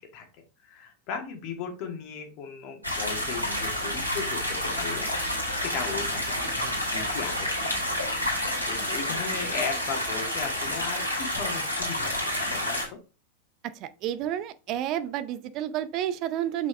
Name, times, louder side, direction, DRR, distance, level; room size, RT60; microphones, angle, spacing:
voice 1, 0.6-5.1 5.5-13.0, left 6 dB, 40° left, 1.8 m, -37 dB
sound 1, 2.8-12.9, left 1 dB, 90° right, 2.4 m, -29 dB
voice 2, 13.7-16.7, right 11 dB, 40° right, 0.6 m, -30 dB
6.3 x 5.2 x 3.2 m
figure-of-eight pair, 90°, 0 cm